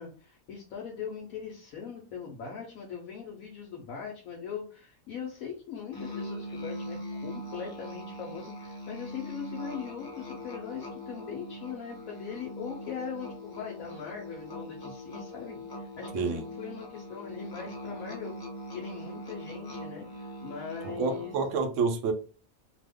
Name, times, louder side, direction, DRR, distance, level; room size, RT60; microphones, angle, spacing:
voice 1, 0.0-18.3 18.7-21.3, left 7 dB, 80° left, 1.1 m, -40 dB
Musical instrument, 5.9-21.5, equal, 30° left, 0.4 m, -41 dB
voice 2, 20.8-22.1, right 4 dB, 70° right, 0.9 m, -28 dB
2.9 x 2.1 x 3.4 m
omnidirectional pair, 1.5 m